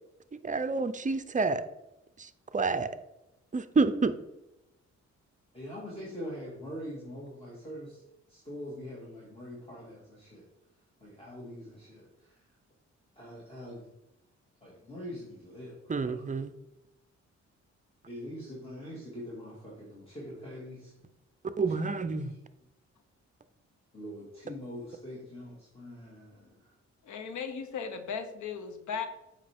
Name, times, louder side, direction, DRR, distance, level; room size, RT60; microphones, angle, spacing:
voice 1, 0.4-1.6 2.2-2.3 2.5-2.9 3.5-4.1 15.9-16.5 21.6-22.3, right 4 dB, 25° right, 11 dB, 0.6 m, -28 dB
voice 2, 5.5-8.0 8.3-10.4 11.0-12.4 13.2-13.9 14.6-16.2 18.1-20.9 22.3-22.4 23.9-26.7, equal, 20° left, -6 dB, 2.2 m, -43 dB
voice 3, 27.0-29.1, left 6 dB, 85° left, 9 dB, 0.9 m, -36 dB
7.6 x 5.1 x 3.6 m, 0.95 s
cardioid pair, 80°, 29 cm